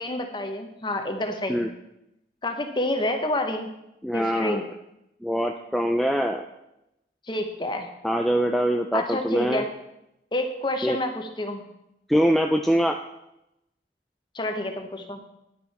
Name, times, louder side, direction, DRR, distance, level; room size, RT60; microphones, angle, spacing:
voice 1, 0.0-1.6 2.4-3.7 4.1-4.6 7.3-7.9 8.9-9.7 10.3-11.6 14.3-15.2, left 1 dB, 25° left, 5 dB, 1.0 m, -28 dB
voice 2, 4.0-4.7 5.2-6.4 8.0-9.6 10.8-11.0 12.1-13.0, equal, ahead, 3 dB, 0.4 m, -23 dB
10.0 x 9.2 x 4.3 m, 0.85 s
head